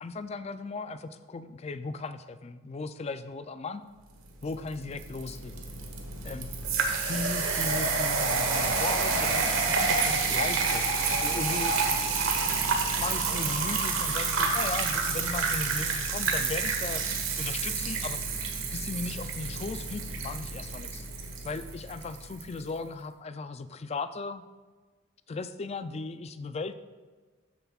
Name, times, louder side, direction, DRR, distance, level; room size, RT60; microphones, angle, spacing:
voice 1, 0.0-3.8 4.4-5.5 6.2-6.5 7.1-11.0 11.2-11.9 13.0-21.1 21.4-24.4 25.3-26.7, left 3 dB, 30° left, 11 dB, 0.3 m, -37 dB
sound 1, 4.5-22.5, right 4 dB, 80° right, 1.2 m, -29 dB
sound 2, 8.2-14.1, right 1 dB, 55° right, 1.5 m, -43 dB
12.5 x 7.0 x 2.4 m, 1.4 s
head